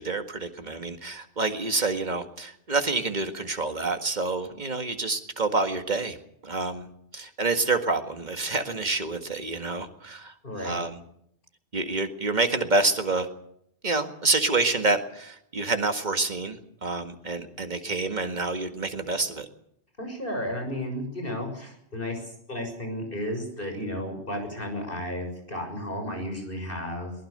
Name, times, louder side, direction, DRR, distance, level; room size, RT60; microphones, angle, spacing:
voice 1, 0.0-6.2 6.4-6.9 7.1-10.3 10.6-11.0 11.7-13.3 13.8-19.5, right 3 dB, 40° right, 7 dB, 2.0 m, -27 dB
voice 2, 10.4-10.8 20.0-22.2 22.5-27.1, left 1 dB, 55° left, 4 dB, 7.0 m, -33 dB
22.0 x 20.0 x 6.7 m, 0.72 s
omnidirectional pair, 1.1 m